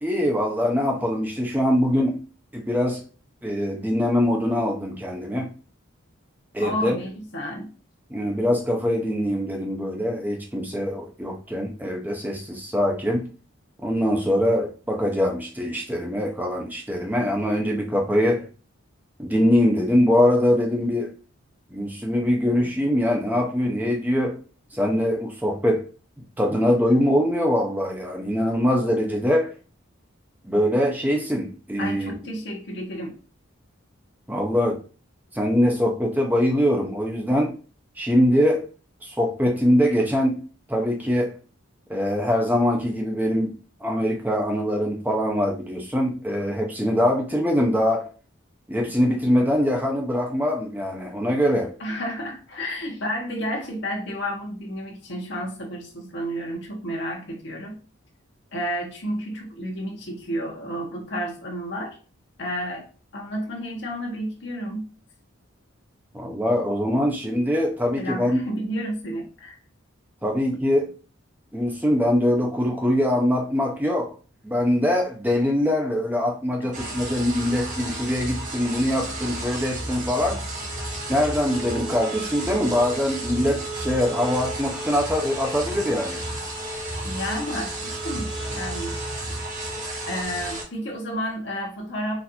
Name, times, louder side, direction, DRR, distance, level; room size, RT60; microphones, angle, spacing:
voice 1, 0.0-2.2 2.5-3.0 3.4-5.5 6.5-7.0 8.1-13.3 13.8-18.5 19.2-21.2 21.7-24.4 24.7-25.9 26.4-29.5 30.4-32.2 34.3-34.8 35.3-37.5 38.0-38.7 39.0-40.4 40.7-41.4 41.9-48.1 48.7-51.7 66.1-68.4 70.2-70.9 71.5-74.2 74.4-80.4 81.1-86.2, left 1 dB, 10° right, 0.5 m, -23 dB
voice 2, 6.6-7.7 31.8-33.2 51.8-57.8 58.5-62.0 62.4-62.9 63.1-64.9 68.0-69.5 87.0-89.0 90.1-92.2, equal, 55° left, 1.0 m, -31 dB
sound 1, 76.7-90.6, right 2 dB, 35° right, 1.0 m, -32 dB
4.1 x 2.5 x 2.8 m
head